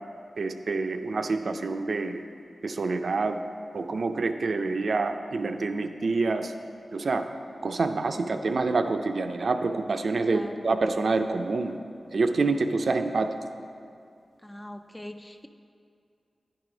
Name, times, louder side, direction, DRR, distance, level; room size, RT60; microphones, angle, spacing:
voice 1, 0.4-2.2 2.6-3.4 3.7-6.5 6.9-7.3 7.6-11.8 12.1-13.3, right 3 dB, 70° right, 7 dB, 0.4 m, -27 dB
voice 2, 10.3-10.7 14.4-15.5, left 1 dB, 15° left, 7 dB, 0.4 m, -43 dB
10.0 x 4.8 x 5.0 m, 2.4 s
cardioid pair, 40°, 0 cm